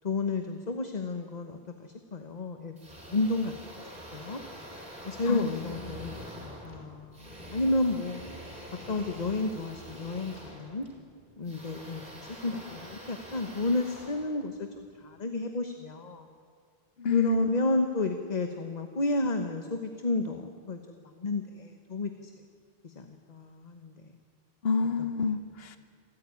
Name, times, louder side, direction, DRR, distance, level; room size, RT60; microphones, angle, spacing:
voice 1, 0.0-3.5 4.1-4.4 5.0-8.2 8.9-10.9 11.4-16.3 17.1-22.3 22.8-23.9, left 2 dB, 45° left, 6 dB, 1.3 m, -31 dB
sound 1, 2.8-15.0, equal, 45° right, 5.0 m, -45 dB
voice 2, 17.0-17.5 24.6-25.8, left 4 dB, 75° left, 10 dB, 1.2 m, -27 dB
27.5 x 14.0 x 9.7 m, 2.2 s
omnidirectional pair, 1.0 m